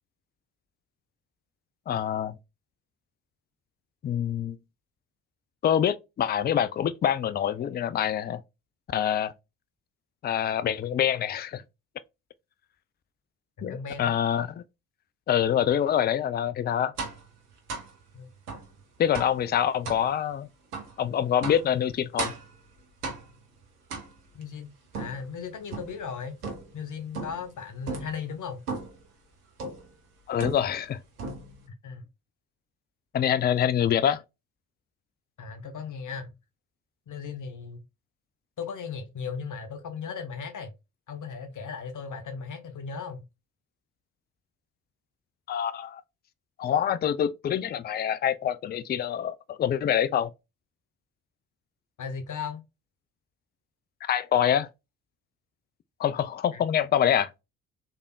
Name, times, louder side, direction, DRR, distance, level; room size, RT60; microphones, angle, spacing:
voice 1, 1.9-2.4 4.0-4.6 5.6-8.4 8.9-9.3 10.2-11.6 13.6-14.6 15.3-16.9 19.0-20.5 21.0-22.3 30.3-31.0 33.1-34.2 45.5-46.0 46.6-50.3 54.0-54.7 56.0-57.3, left 9 dB, 25° left, 0.4 m, -25 dB
voice 2, 13.6-14.1 18.1-18.3 24.3-26.4 26.7-28.6 31.8-32.1 35.4-36.3 37.1-37.8 38.6-40.7 41.1-43.2 52.0-52.6 56.5-56.6, left 6 dB, 45° left, 1.1 m, -37 dB
sound 1, 17.0-17.3 17.7-17.9 18.5-18.7 19.1-19.4 19.8-20.1 20.7-20.9 21.4-21.7 22.2-22.5 23.0-23.4 23.9-24.4 24.9-26.0 26.4-26.8 27.1-27.5 27.9-28.2 28.7-29.0 29.6-29.9 30.4-30.9 31.2-31.7, right 4 dB, 85° right, 1.0 m, -36 dB
3.5 x 3.4 x 2.3 m
figure-of-eight pair, 45°, 44 cm